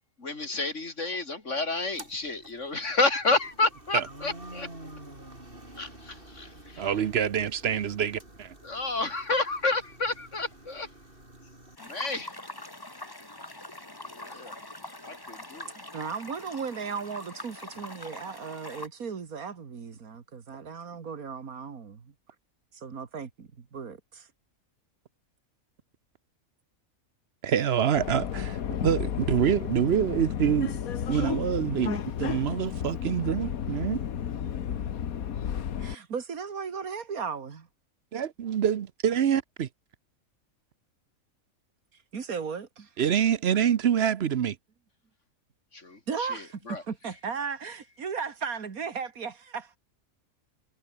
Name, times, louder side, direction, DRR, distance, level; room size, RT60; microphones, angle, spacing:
voice 1, 0.2-4.7 5.8-6.9 8.6-10.9 11.8-12.3 14.1-14.5 15.0-15.7 45.7-46.8, left 3 dB, 55° left, 3.9 m, -30 dB
sound 1, 1.8-11.8, right 1 dB, 40° right, 6.3 m, -48 dB
voice 2, 6.8-8.5 27.4-28.6 28.8-30.8 31.1-34.0 38.1-39.7 43.0-44.6, right 9 dB, 55° right, 0.9 m, -26 dB
sound 2, 11.8-18.9, left 1 dB, 15° left, 2.3 m, -43 dB
voice 3, 15.8-22.1 22.7-24.3 35.8-37.7 42.1-42.9 46.1-49.8, right 6 dB, 85° right, 2.3 m, -36 dB
Subway metro underground, 28.0-36.0, left 9 dB, 85° left, 1.6 m, -32 dB
omnidirectional pair, 1.5 m